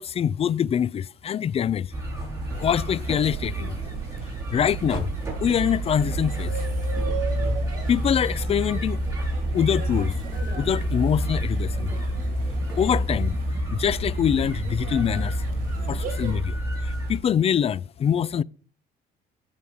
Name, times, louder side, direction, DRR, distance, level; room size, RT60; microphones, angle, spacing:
voice 1, 0.0-1.9 2.6-3.8 4.5-5.1 5.4-6.5 7.9-9.0 9.5-10.2 10.5-11.9 12.8-13.3 13.7-15.4 15.9-16.6 16.8-18.4, left 8 dB, 35° left, 0.4 m, -24 dB
sound 1, 1.9-17.2, equal, 15° right, 7.8 m, -28 dB
sound 2, 2.5-16.4, right 6 dB, 55° right, 2.7 m, -38 dB
15.0 x 5.2 x 7.0 m
cardioid pair, 110°, 17 cm